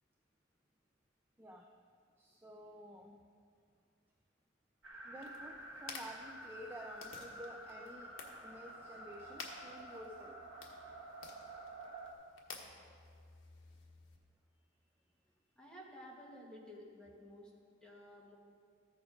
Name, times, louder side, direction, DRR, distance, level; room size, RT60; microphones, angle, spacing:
voice 1, 1.4-1.7 2.2-3.2 5.0-8.1 8.4-10.4, equal, 10° right, 2 dB, 0.5 m, -51 dB
sound 1, 4.8-12.1, right 1 dB, 85° right, 1.6 m, -50 dB
sound 2, 5.2-14.2, left 4 dB, 75° left, 1.2 m, -54 dB
voice 2, 15.6-17.5 17.8-18.4, equal, 5° left, -4 dB, 1.7 m, -53 dB
14.0 x 7.0 x 5.1 m, 2.2 s
head